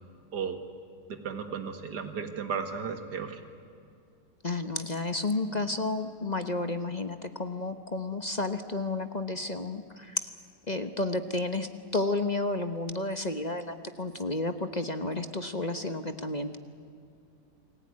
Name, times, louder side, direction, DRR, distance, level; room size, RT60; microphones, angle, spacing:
voice 1, 1.1-3.4, right 6 dB, 65° right, 6 dB, 2.5 m, -34 dB
voice 2, 4.4-10.3 10.7-16.6, left 2 dB, 30° left, 8 dB, 1.0 m, -31 dB
29.0 x 20.5 x 9.7 m, 2.5 s
omnidirectional pair, 1.9 m